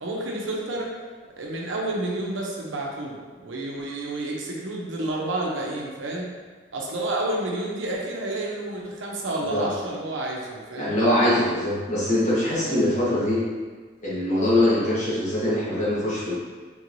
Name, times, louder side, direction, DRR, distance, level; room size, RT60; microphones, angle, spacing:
voice 1, 0.0-1.0 1.4-6.3 6.7-10.9 12.4-12.8, right 1 dB, 80° right, -2 dB, 0.6 m, -30 dB
voice 2, 10.7-13.4 14.0-16.3, left 1 dB, 35° left, -9 dB, 1.1 m, -23 dB
3.7 x 3.1 x 2.6 m, 1.4 s
head